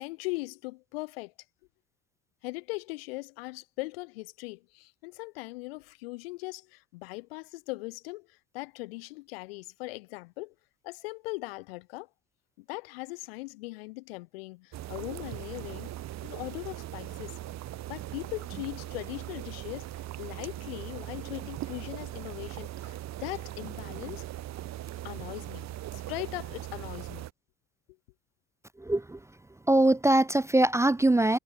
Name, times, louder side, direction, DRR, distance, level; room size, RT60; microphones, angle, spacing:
voice 1, 0.0-1.3 2.4-10.5 10.8-12.1 12.6-15.9 16.2-17.4 17.9-24.2 25.0-27.2, left 23 dB, 85° left, 2.9 m, -39 dB
sound 1, 14.7-27.3, right 14 dB, 65° right, 7.8 m, -40 dB
voice 2, 28.9-29.2 29.7-31.4, right 1 dB, 10° right, 0.5 m, -22 dB
hypercardioid pair, 55°, 29 cm